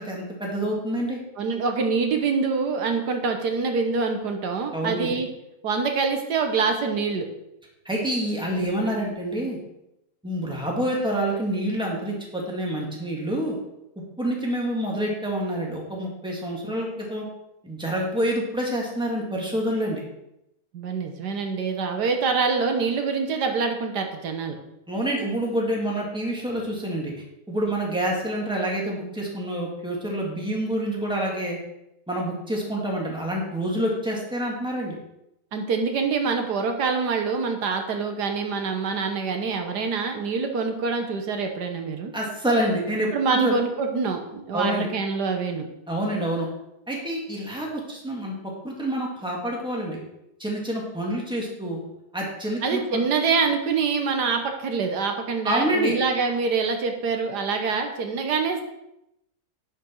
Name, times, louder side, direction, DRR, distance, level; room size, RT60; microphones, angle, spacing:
voice 1, 0.0-1.2 4.7-5.1 7.8-9.6 10.2-13.6 14.2-17.3 17.6-20.0 24.9-27.1 27.5-31.6 32.1-35.0 42.1-43.5 44.5-44.9 45.9-46.5 46.9-50.0 50.4-51.8 52.1-53.0 55.4-55.9, right 1 dB, 5° right, -2 dB, 2.1 m, -27 dB
voice 2, 1.4-5.3 5.6-7.3 20.7-24.6 35.5-42.1 43.1-45.7 52.6-58.6, right 5 dB, 80° right, 5 dB, 1.7 m, -25 dB
10.5 x 6.6 x 4.7 m, 0.86 s
omnidirectional pair, 1.7 m